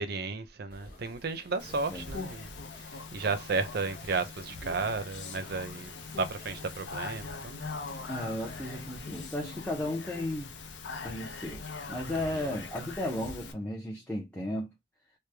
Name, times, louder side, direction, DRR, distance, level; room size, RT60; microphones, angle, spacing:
voice 1, 0.0-2.5 3.1-7.7 12.3-12.4, right 4 dB, 60° right, 0.5 m, -33 dB
sound 1, 0.7-9.3, left 2 dB, 55° left, 1.4 m, -51 dB
Speech, 1.6-13.5, left 4 dB, 75° left, 0.6 m, -42 dB
voice 2, 8.1-10.5 11.0-14.7, left 1 dB, 10° left, 0.6 m, -35 dB
3.1 x 2.1 x 3.2 m
head